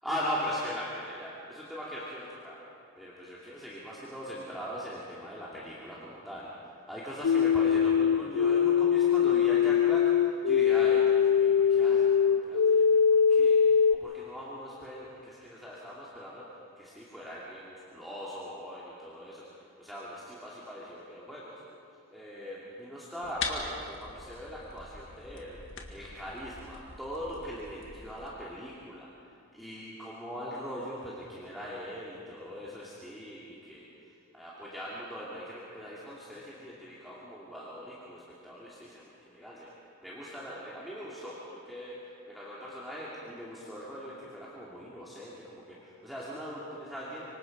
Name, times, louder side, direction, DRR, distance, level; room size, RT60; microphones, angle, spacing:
voice 1, 0.0-2.6 3.0-6.5 6.9-13.6 14.0-19.4 19.8-21.6 22.1-25.6 25.9-29.1 29.5-33.8 34.3-39.7 40.0-41.9 42.3-47.2, equal, ahead, -8 dB, 2.6 m, -40 dB
sound 1, 7.2-13.9, left 7 dB, 85° left, 0.4 m, -22 dB
sound 2, 23.2-28.3, left 4 dB, 55° left, 2.0 m, -42 dB
25.5 x 25.0 x 5.3 m, 2.5 s
head